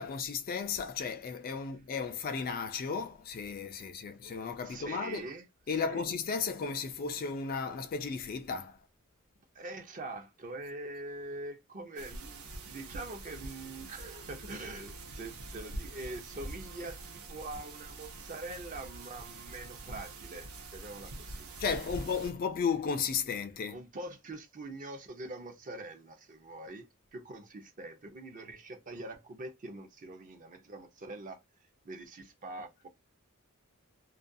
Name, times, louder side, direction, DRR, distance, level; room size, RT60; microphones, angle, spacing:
voice 1, 0.0-5.3 5.7-8.8 21.6-23.8, left 5 dB, 40° left, 0.3 m, -34 dB
voice 2, 4.6-6.0 9.5-21.5 23.7-31.4 31.8-32.9, right 2 dB, 35° right, 0.6 m, -44 dB
sound 1, 12.0-22.3, right 2 dB, 70° right, 0.7 m, -45 dB
2.4 x 2.2 x 2.5 m
head